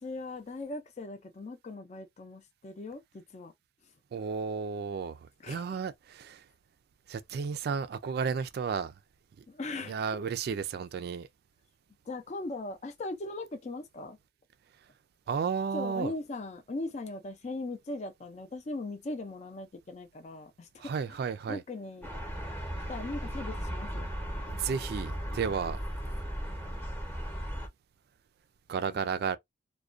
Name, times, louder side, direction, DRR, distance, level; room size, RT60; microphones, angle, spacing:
voice 1, 0.0-3.5 5.4-5.6 9.5-10.0 12.1-14.2 15.7-21.2 21.5-22.1 22.9-24.1 28.8-29.0, left 2 dB, 40° left, 0.4 m, -39 dB
voice 2, 4.1-5.2 5.5-6.4 7.1-8.9 9.9-11.3 15.3-16.1 20.8-21.6 24.5-25.8 28.7-29.4, right 6 dB, 60° right, 0.3 m, -33 dB
sound 1, 22.0-27.7, equal, 10° left, 0.8 m, -36 dB
2.4 x 2.2 x 2.4 m
head